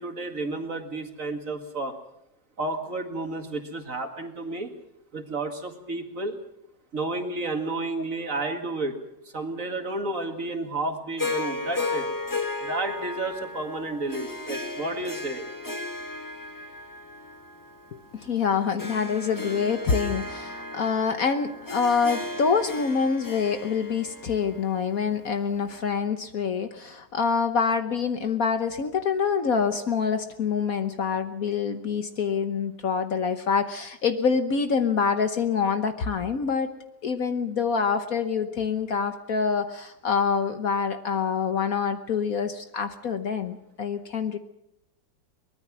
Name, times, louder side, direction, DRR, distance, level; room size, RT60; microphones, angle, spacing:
voice 1, 0.0-1.9 2.6-4.7 5.1-6.4 6.9-9.0 9.3-12.1 12.6-15.5, right 2 dB, 45° right, 5 dB, 2.4 m, -31 dB
Harp, 11.2-25.6, left 2 dB, 10° left, 1.6 m, -35 dB
voice 2, 17.9-36.7 37.0-44.4, left 6 dB, 55° left, 9 dB, 1.4 m, -26 dB
23.5 x 20.0 x 6.1 m, 0.80 s
omnidirectional pair, 2.0 m